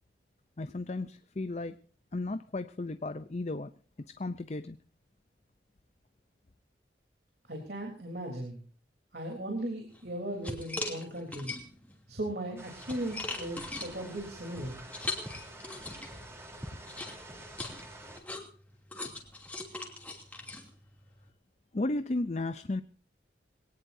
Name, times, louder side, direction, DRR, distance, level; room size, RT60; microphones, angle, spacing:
voice 1, 0.6-1.8 2.1-3.7 4.2-4.8 21.7-22.8, left 2 dB, 40° left, 11 dB, 0.6 m, -34 dB
voice 2, 7.5-8.6 9.1-11.5 12.1-14.8, right 1 dB, 65° right, 1 dB, 3.6 m, -37 dB
sound 1, 9.9-10.1 10.4-11.9 12.5-16.3 16.8-21.3, left 2 dB, 10° left, 2.8 m, -40 dB
sound 2, 12.6-18.2, right 1 dB, 15° right, 3.5 m, -47 dB
22.5 x 18.0 x 2.7 m, 0.42 s
head